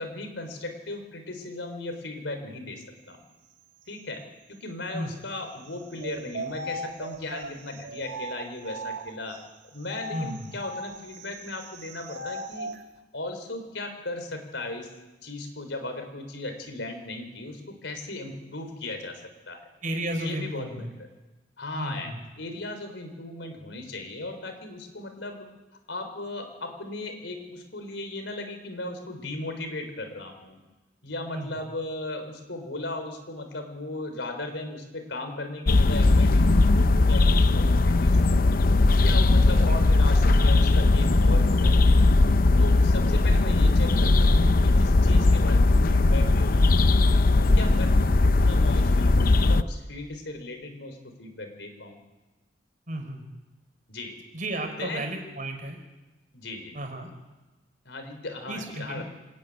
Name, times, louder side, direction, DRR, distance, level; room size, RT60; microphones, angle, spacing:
voice 1, 0.0-3.2 3.9-4.2 4.5-9.4 9.7-12.7 13.1-14.9 15.2-19.6 20.2-20.9 21.6-22.1 22.4-25.5 25.9-30.6 31.0-38.5 39.0-42.0 42.6-46.9 47.4-52.0 53.9-54.2 54.8-55.0 56.3-56.9 57.9-59.0, left 2 dB, 90° left, 6 dB, 3.9 m, -37 dB
sound 1, 6.0-9.4 9.9-12.8, right 1 dB, 80° right, 1.4 m, -38 dB
voice 2, 10.1-10.5 19.8-20.9 21.8-22.2 31.3-31.6 39.5-39.8 52.9-53.3 54.3-55.8 56.7-57.1 58.5-59.0, right 1 dB, 45° right, 4 dB, 4.1 m, -33 dB
sound 2, 35.7-49.6, left 2 dB, 50° left, 0.6 m, -19 dB
26.5 x 11.0 x 9.3 m, 1.1 s
head